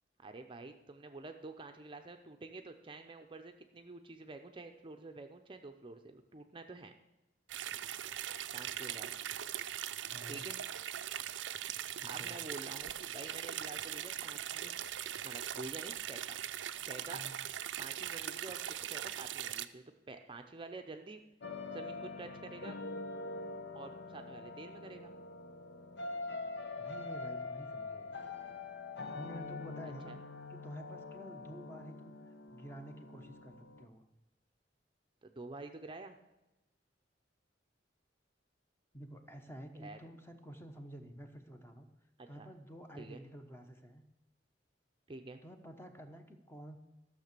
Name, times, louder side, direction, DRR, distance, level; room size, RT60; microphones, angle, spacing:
voice 1, 0.2-6.9 8.5-9.2 10.3-10.6 12.0-14.7 15.2-16.4 16.8-17.2 17.8-21.2 21.7-22.8 23.7-25.1 30.1-30.2 35.2-36.2 39.7-40.0 42.2-42.5 43.0-43.2 45.1-45.4, right 3 dB, 30° right, 6 dB, 0.6 m, -48 dB
sound 1, 7.5-19.7, right 11 dB, 80° right, 0.5 m, -40 dB
voice 2, 10.1-10.4 12.0-12.4 17.1-17.4 26.8-28.1 29.1-30.2 30.5-32.2 32.5-34.0 38.9-41.9 42.3-44.0 45.4-46.8, equal, 15° left, 6 dB, 1.0 m, -50 dB
sound 2, 21.4-33.8, left 3 dB, 65° left, 0.8 m, -44 dB
12.5 x 6.7 x 6.7 m, 0.98 s
head